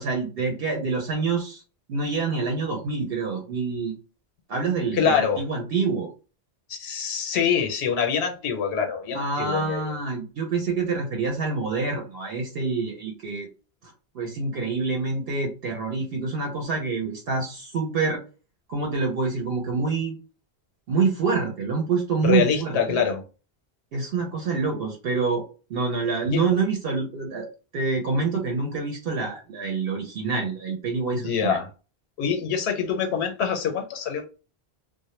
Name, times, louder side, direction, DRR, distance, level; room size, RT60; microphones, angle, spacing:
voice 1, 0.0-1.6 1.9-3.9 4.5-6.1 9.1-13.5 14.1-18.2 18.7-20.1 20.9-23.0 23.9-25.4 25.7-27.4 27.7-31.6, right 4 dB, 70° right, 0.8 m, -26 dB
voice 2, 4.9-5.4 6.7-9.9 22.2-23.2 26.3-26.4 31.1-31.7 32.2-34.3, left 7 dB, 90° left, 0.9 m, -25 dB
2.1 x 2.1 x 2.9 m
omnidirectional pair, 1.1 m